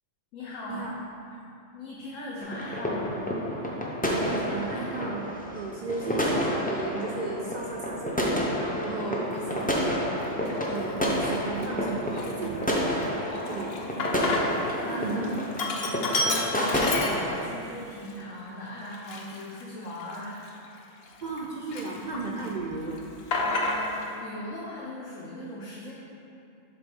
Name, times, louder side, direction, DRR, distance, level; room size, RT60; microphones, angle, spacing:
voice 1, 0.3-0.9 1.7-3.2 13.2-14.1 14.7-15.1 15.9-20.4 23.4-25.9, left 1 dB, 75° left, -5 dB, 1.2 m, -39 dB
sound 1, 2.4-17.5, equal, 15° left, 0.3 m, -29 dB
voice 2, 4.1-10.0 10.7-13.7 14.9-15.4 21.2-23.0, right 3 dB, 60° right, -2 dB, 0.4 m, -35 dB
Sink (filling or washing), 9.5-9.7 10.3-10.9 11.2-11.3 11.6-14.8 15.1-17.6 18.1-18.2 18.9-21.4 21.7-22.5 22.8-24.1, left 2 dB, 55° left, 0.8 m, -31 dB
7.2 x 3.4 x 5.3 m, 2.6 s
omnidirectional pair, 1.3 m